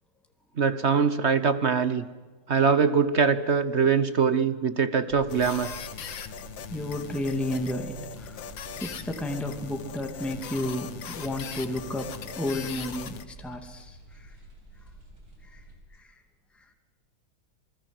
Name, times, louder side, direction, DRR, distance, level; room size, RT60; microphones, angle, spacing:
voice 1, 0.6-2.1 2.5-5.7, right 6 dB, 45° right, 13 dB, 0.9 m, -23 dB
sound 1, 5.1-15.8, right 2 dB, 80° right, 5.5 m, -49 dB
sound 2, 5.3-13.2, left 7 dB, 70° left, 2.0 m, -40 dB
voice 2, 6.7-8.5 8.8-14.4 15.5-15.6 15.9-16.1, left 1 dB, ahead, 4 dB, 2.2 m, -32 dB
28.0 x 21.0 x 7.8 m, 1.3 s
omnidirectional pair, 2.2 m